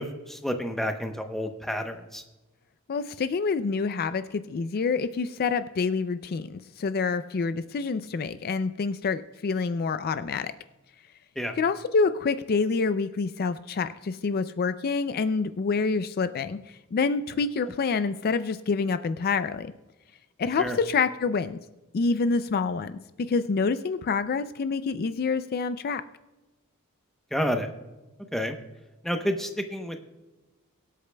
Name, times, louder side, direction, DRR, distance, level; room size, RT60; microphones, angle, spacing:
voice 1, 0.0-2.2 11.4-11.6 20.6-20.8 27.3-27.7 28.3-28.6 29.0-30.0, equal, ahead, 5 dB, 0.8 m, -30 dB
voice 2, 2.9-10.5 11.6-19.7 20.4-21.6 21.9-23.0 23.3-26.0, left 4 dB, 45° left, 12 dB, 0.4 m, -27 dB
24.5 x 8.3 x 2.2 m, 1.1 s
head